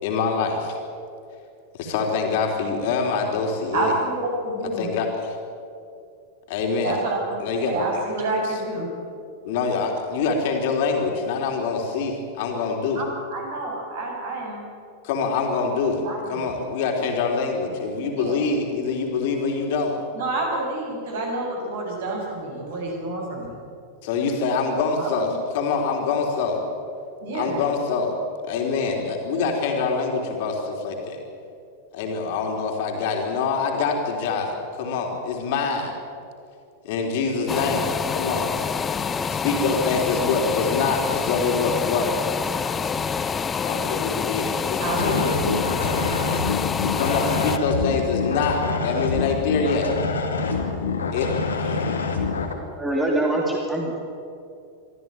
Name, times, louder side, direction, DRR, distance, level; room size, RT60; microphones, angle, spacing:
voice 1, 0.0-0.8 1.8-3.9 4.8-5.3 6.5-7.0 7.4-7.8 9.4-13.0 15.0-16.0 16.3-20.0 24.0-26.6 27.3-28.1 28.4-31.2 31.9-35.9 36.8-38.5 39.3-42.2 43.6-45.1 47.0-49.9 51.1-51.3 51.6-51.8, left 4 dB, 50° left, 2 dB, 3.6 m, -25 dB
voice 2, 3.7-4.9 6.8-8.9 12.9-14.7 16.0-16.5 18.1-18.4 20.1-23.6 25.0-25.4 27.2-27.6 44.8-45.5, right 2 dB, 55° right, -1 dB, 7.3 m, -28 dB
sound 1, 37.5-47.6, left 6 dB, 20° left, 0.8 m, -27 dB
sound 2, 44.9-52.5, left 4 dB, 70° left, 2.6 m, -26 dB
voice 3, 52.8-54.0, right 1 dB, 5° right, -1 dB, 2.8 m, -24 dB
24.0 x 14.5 x 9.1 m, 2.5 s
figure-of-eight pair, 90°, 0 cm